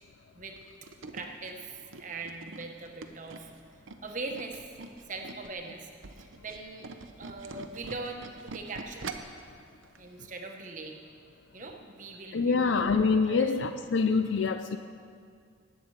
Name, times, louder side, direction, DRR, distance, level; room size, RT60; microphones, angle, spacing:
Tools, 0.6-5.5 5.9-9.4 9.8-10.0 10.3-10.4, right 3 dB, 80° right, 0.7 m, -44 dB
voice 1, 1.1-1.6 2.0-3.5 4.0-4.6 5.1-5.9 6.2-6.9 7.2-9.1 10.0-11.0 11.5-12.8 13.3-13.5, right 3 dB, 40° right, 3 dB, 1.1 m, -41 dB
voice 2, 12.3-14.8, left 4 dB, 70° left, 8 dB, 0.4 m, -25 dB
18.5 x 8.4 x 4.7 m, 2.2 s
head